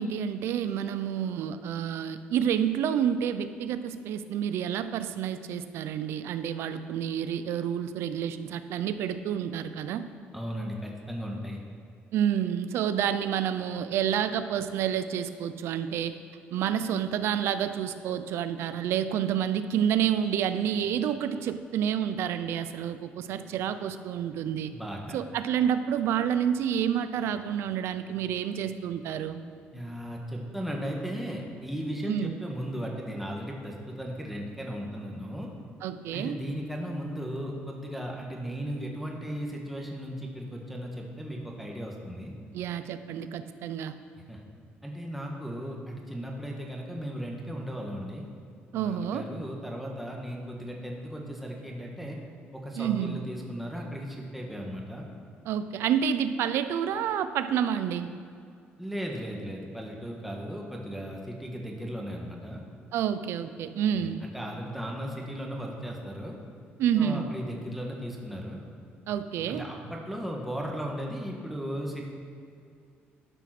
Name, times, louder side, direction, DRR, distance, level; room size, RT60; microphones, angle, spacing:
voice 1, 0.0-10.1 12.1-16.1 16.5-24.7 25.1-29.4 32.1-32.3 35.8-36.4 42.5-43.9 48.7-49.2 52.8-53.2 55.5-58.1 62.9-64.2 66.8-67.3 69.1-69.7, right 9 dB, 80° right, 11 dB, 0.6 m, -29 dB
voice 2, 10.3-11.6 24.7-25.2 29.7-35.5 36.1-42.3 44.3-44.4 44.8-48.3 48.7-52.2 52.5-55.1 58.8-62.6 63.9-66.3 66.9-68.6 69.5-72.0, equal, 5° right, -1 dB, 1.6 m, -36 dB
12.0 x 5.9 x 6.1 m, 2.4 s
cardioid pair, 100°, 4 cm